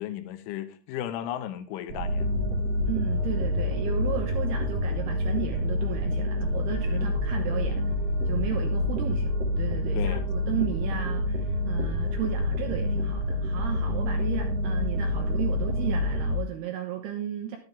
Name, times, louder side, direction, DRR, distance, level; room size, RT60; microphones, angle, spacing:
voice 1, 0.0-2.3 6.9-7.2 10.0-10.2, left 11 dB, 80° left, 3.1 m, -35 dB
sound 1, 1.9-16.4, left 1 dB, 40° right, 2.7 m, -27 dB
voice 2, 2.9-7.8 8.3-17.6, right 10 dB, 75° right, 2.5 m, -34 dB
11.5 x 9.1 x 3.5 m
omnidirectional pair, 5.7 m